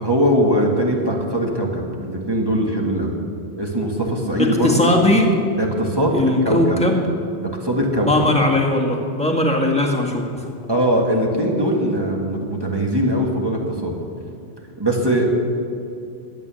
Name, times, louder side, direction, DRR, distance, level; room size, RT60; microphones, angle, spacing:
voice 1, 0.0-3.2 3.6-5.0 5.6-6.2 6.5-6.8 7.6-8.1 10.7-14.0 14.8-15.2, equal, 20° right, -1 dB, 1.7 m, -21 dB
voice 2, 4.4-5.3 6.1-7.0 8.0-10.5, left 1 dB, 5° left, 0 dB, 1.6 m, -19 dB
12.0 x 9.2 x 6.9 m, 2.7 s
omnidirectional pair, 1.2 m